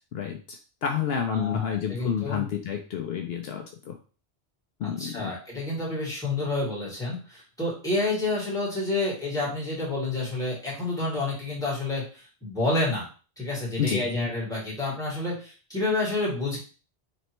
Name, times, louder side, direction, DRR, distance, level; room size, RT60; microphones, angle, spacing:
voice 1, 0.0-4.0 4.8-5.3 13.8-14.1, left 8 dB, 70° left, 4 dB, 0.8 m, -30 dB
voice 2, 1.3-2.5 4.8-13.1 13.4-16.6, left 2 dB, 5° left, -6 dB, 1.9 m, -29 dB
4.3 x 3.2 x 3.0 m, 0.36 s
omnidirectional pair, 1.1 m